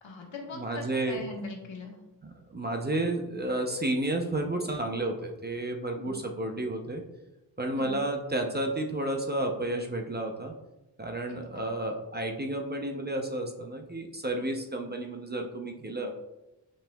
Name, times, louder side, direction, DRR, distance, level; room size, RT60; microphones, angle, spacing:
voice 1, 0.0-2.0 6.0-6.1 7.7-8.0 11.5-11.7, left 3 dB, 85° left, 1 dB, 1.4 m, -41 dB
voice 2, 0.5-1.2 2.5-7.0 7.6-10.5 11.0-16.1, right 1 dB, 25° right, 3 dB, 0.6 m, -31 dB
8.6 x 5.4 x 2.3 m, 0.99 s
wide cardioid pair, 170°, 44 cm